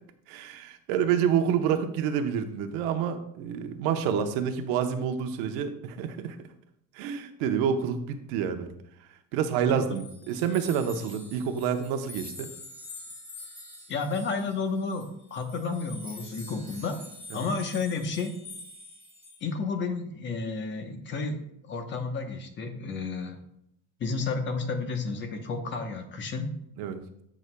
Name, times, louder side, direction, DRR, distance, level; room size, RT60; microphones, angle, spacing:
voice 1, 0.3-6.4 6.9-8.7 9.3-12.5 17.3-17.5 26.8-27.0, right 8 dB, 75° right, 7 dB, 1.0 m, -28 dB
sound 1, 10.0-19.4, left 2 dB, 10° left, 2.2 m, -46 dB
voice 2, 13.9-17.0 17.3-18.4 19.4-23.4 24.0-26.5, left 4 dB, 30° left, 6 dB, 1.0 m, -31 dB
15.0 x 6.1 x 2.2 m, 0.76 s
cardioid pair, 155°, 36 cm